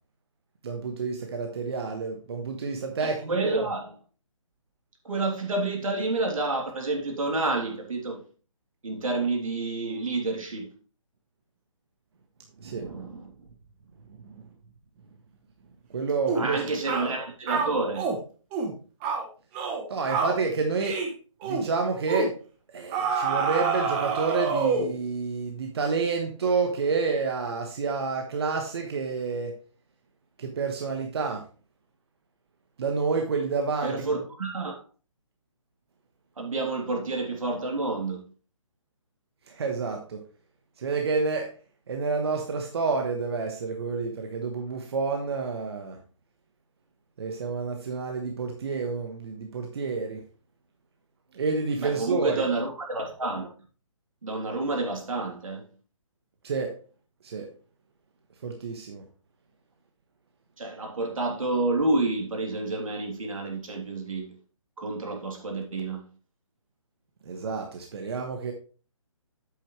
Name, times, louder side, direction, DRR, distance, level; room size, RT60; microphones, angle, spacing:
voice 1, 0.6-3.7 12.6-13.0 14.2-14.4 15.9-16.6 19.9-21.0 21.4-22.3 22.7-29.6 30.4-31.4 32.8-33.9 39.5-40.2 40.8-41.5 41.9-46.0 47.2-50.2 51.3-52.4 56.4-56.8 57.2-57.5 58.4-59.0 67.2-68.5, right 4 dB, 50° right, 1.2 m, -29 dB
voice 2, 3.0-3.9 5.0-8.2 8.8-10.7 12.8-13.5 16.3-18.1 33.8-34.8 36.4-38.2 51.8-53.5 54.2-55.6 60.6-64.3 64.8-66.0, right 2 dB, 80° right, 3.3 m, -29 dB
sound 1, 16.3-16.5 16.9-17.1 17.5-18.2 18.5-18.7 19.0-19.2 19.5-19.8 20.1-20.4 20.8-21.1 21.4-21.7 22.1-22.3 22.9-25.0, right 5 dB, 15° right, 1.1 m, -27 dB
8.4 x 8.2 x 3.2 m
hypercardioid pair, 165°, 17 cm